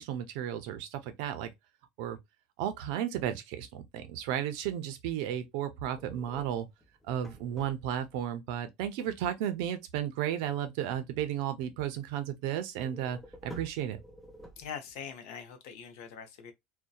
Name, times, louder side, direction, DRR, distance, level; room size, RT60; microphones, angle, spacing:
voice 1, 0.0-1.5 2.0-2.2 2.6-6.7 7.1-14.0, right 10 dB, 60° right, 0.5 m, -34 dB
sound 1, 5.9-8.2 12.7-15.0, right 1 dB, 5° left, 0.4 m, -50 dB
voice 2, 14.6-16.5, left 7 dB, 65° left, 0.6 m, -43 dB
2.7 x 2.1 x 2.2 m
cardioid pair, 175°, 2 cm